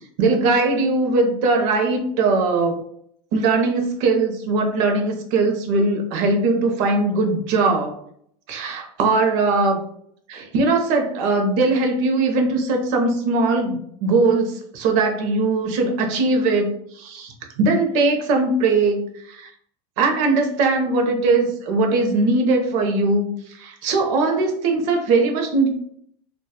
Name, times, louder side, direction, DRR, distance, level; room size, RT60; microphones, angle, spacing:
voice 1, 0.2-2.8 3.3-8.0 8.5-9.8 10.3-19.5 20.0-25.7, right 3 dB, 60° right, 3 dB, 0.6 m, -20 dB
2.7 x 2.2 x 2.2 m, 0.69 s
supercardioid pair, 140°, 14 cm